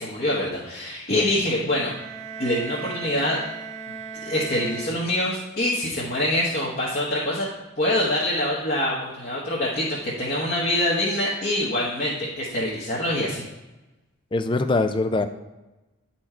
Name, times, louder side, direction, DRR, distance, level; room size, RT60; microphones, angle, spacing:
voice 1, 0.0-1.9 2.4-3.4 4.2-7.5 7.8-13.4, left 1 dB, 45° left, -5 dB, 1.2 m, -25 dB
sound 1, 1.8-5.6, right 6 dB, 35° right, 0.6 m, -38 dB
voice 2, 14.3-15.3, left 3 dB, 25° left, 10 dB, 0.4 m, -23 dB
9.8 x 4.3 x 4.3 m, 1.0 s
head